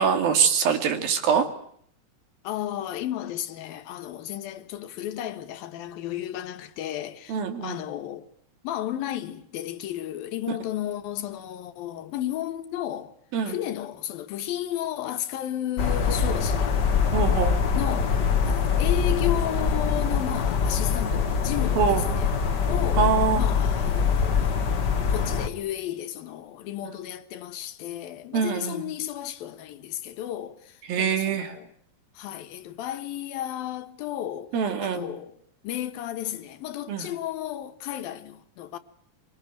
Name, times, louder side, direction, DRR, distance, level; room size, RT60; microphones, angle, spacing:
voice 1, 0.0-1.5 7.3-7.8 13.3-13.6 17.1-17.6 21.8-22.0 23.0-23.4 28.3-28.8 30.9-31.5 34.5-35.1 36.9-37.1, right 7 dB, 90° right, 4.3 m, -24 dB
voice 2, 2.4-8.3 8.6-13.1 13.5-16.8 17.7-18.2 18.4-22.3 22.7-24.6 25.1-31.7 32.2-34.5 34.8-35.4 35.6-38.8, left 12 dB, 90° left, 3.2 m, -33 dB
sound 1, 15.8-25.5, left 6 dB, 45° left, 1.5 m, -24 dB
24.5 x 24.0 x 9.3 m
omnidirectional pair, 4.0 m